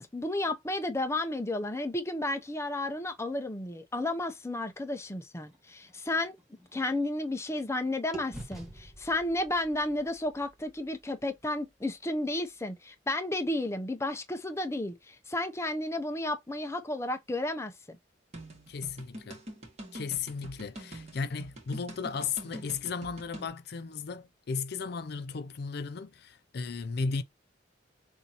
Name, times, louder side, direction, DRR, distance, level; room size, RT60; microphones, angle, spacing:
voice 1, 0.0-6.4 6.7-18.0, left 1 dB, 15° left, 0.6 m, -32 dB
sound 1, 5.4-7.8 8.1-12.1, right 2 dB, 5° right, 1.8 m, -49 dB
sound 2, 18.3-23.5, right 1 dB, 35° right, 2.0 m, -45 dB
voice 2, 18.7-19.4 19.9-27.2, left 5 dB, 55° left, 0.4 m, -35 dB
6.7 x 2.7 x 2.9 m
head